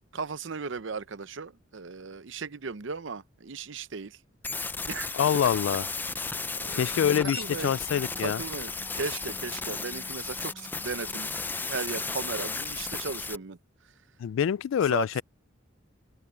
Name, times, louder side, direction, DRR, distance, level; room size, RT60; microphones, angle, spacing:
voice 1, 0.1-4.2 4.9-5.5 6.5-6.9 7.3-7.7 8.2-11.3 11.6-13.6 14.9-15.2, right 4 dB, 70° right, 0.7 m, -36 dB
sound 1, 4.4-13.4, left 4 dB, 10° left, 0.4 m, -34 dB
voice 2, 5.1-5.9 6.7-8.4 14.2-15.2, left 8 dB, 80° left, 0.3 m, -25 dB
sound 2, 6.8-13.4, right 1 dB, 20° right, 1.4 m, -52 dB
open air
head